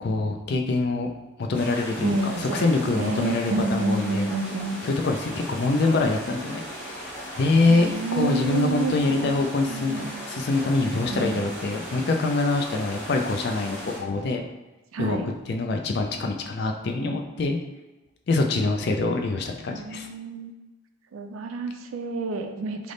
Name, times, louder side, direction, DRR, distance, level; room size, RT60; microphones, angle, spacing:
voice 1, 0.0-1.1 1.4-4.3 4.8-14.4 15.0-15.2 15.5-17.6 18.3-20.1, left 3 dB, 50° left, 3 dB, 0.4 m, -25 dB
sound 1, 1.5-14.0, equal, 5° left, 1.1 m, -37 dB
voice 2, 2.0-4.8 7.7-9.3 9.7-10.2 11.1-11.5 14.9-15.3 19.7-20.5 21.1-22.9, right 3 dB, 75° right, 6 dB, 0.4 m, -29 dB
3.3 x 2.0 x 3.8 m, 1.1 s
head